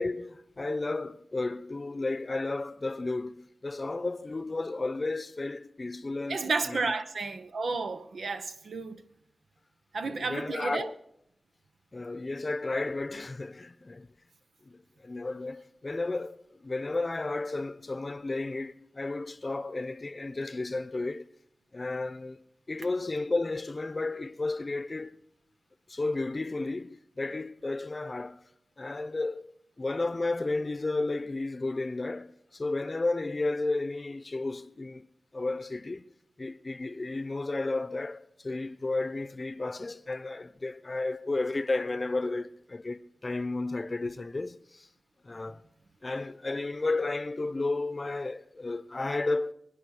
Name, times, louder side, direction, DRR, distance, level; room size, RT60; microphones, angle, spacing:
voice 1, 0.0-6.4 6.7-6.8 10.0-11.0 11.9-14.1 14.6-21.3 21.7-22.4 22.7-25.2 25.9-28.4 28.8-29.5 29.8-35.1 35.3-36.1 36.4-44.9 45.2-45.6 46.0-49.5, left 2 dB, 40° left, 0.7 m, -33 dB
voice 2, 6.3-9.0 9.9-10.9, right 4 dB, 85° right, 0.9 m, -32 dB
26.5 x 9.8 x 4.9 m
cardioid pair, 55°, 0 cm